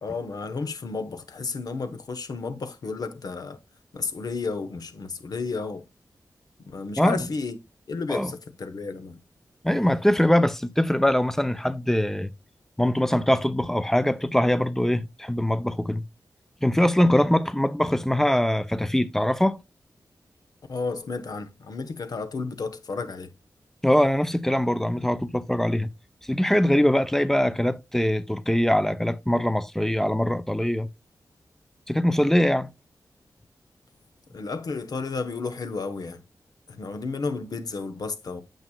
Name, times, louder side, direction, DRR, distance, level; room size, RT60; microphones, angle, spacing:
voice 1, 0.0-3.6 3.9-5.8 6.6-7.6 7.9-9.2 20.7-23.3 34.3-36.2 36.7-38.4, left 4 dB, 70° left, 1.1 m, -32 dB
voice 2, 9.6-12.3 12.8-16.0 16.6-19.6 23.8-25.9 26.2-30.9 31.9-32.7, left 1 dB, 5° left, 0.6 m, -22 dB
9.1 x 6.7 x 2.3 m
wide cardioid pair, 100°, 7 cm